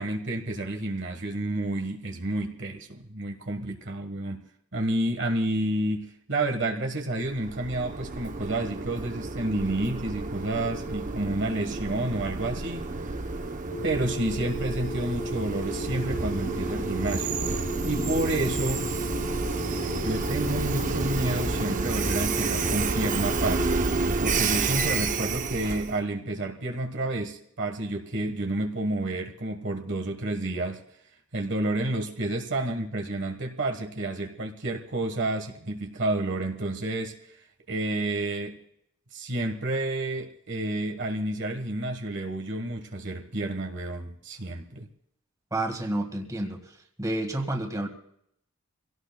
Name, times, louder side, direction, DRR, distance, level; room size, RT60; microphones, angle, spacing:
voice 1, 0.0-4.4 4.7-12.9 13.8-17.3 17.8-18.9 20.0-23.8 24.2-30.8 31.3-37.2 37.7-38.6 39.1-44.9, right 2 dB, 55° right, 4 dB, 1.4 m, -30 dB
Train, 7.2-26.0, right 3 dB, 35° right, 0.7 m, -30 dB
sound 1, 13.7-23.7, equal, 75° left, 4.8 m, -36 dB
voice 2, 45.5-46.6 47.0-47.9, right 1 dB, 15° right, 3 dB, 1.8 m, -29 dB
25.5 x 17.5 x 2.2 m, 0.72 s
head